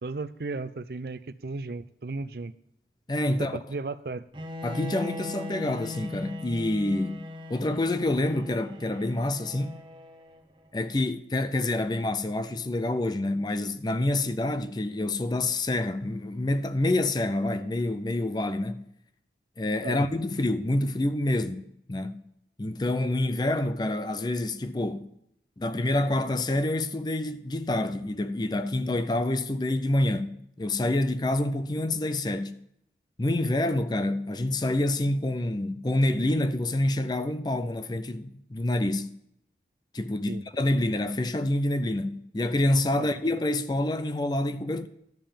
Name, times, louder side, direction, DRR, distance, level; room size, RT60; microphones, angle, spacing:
voice 1, 0.0-2.5 3.4-4.2 19.8-20.0 40.3-40.4 43.0-43.1, right 3 dB, 60° right, 0.5 m, -35 dB
voice 2, 3.1-3.6 4.6-9.8 10.7-18.8 19.6-21.6 21.9-22.2 22.6-25.1 25.6-32.6 33.2-39.1 39.9-44.9, left 1 dB, 25° left, 0.5 m, -27 dB
Bowed string instrument, 4.3-10.4, left 2 dB, 25° right, 1.0 m, -40 dB
12.0 x 5.5 x 7.1 m
head